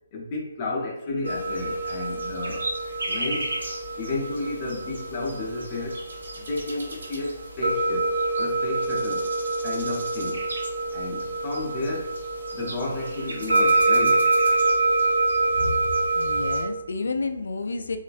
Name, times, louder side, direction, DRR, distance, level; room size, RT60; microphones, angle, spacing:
voice 1, 0.1-2.7 3.0-3.5 4.0-6.0 6.4-8.1 8.4-9.3 9.6-10.4 10.9-12.1 12.5-14.3, left 2 dB, 25° left, -2 dB, 0.6 m, -32 dB
sound 1, 1.2-16.6, right 2 dB, 60° right, 0.9 m, -26 dB
voice 2, 16.1-18.0, left 3 dB, 60° left, 7 dB, 0.3 m, -30 dB
3.0 x 2.4 x 2.4 m, 0.90 s
figure-of-eight pair, 140°, 0 cm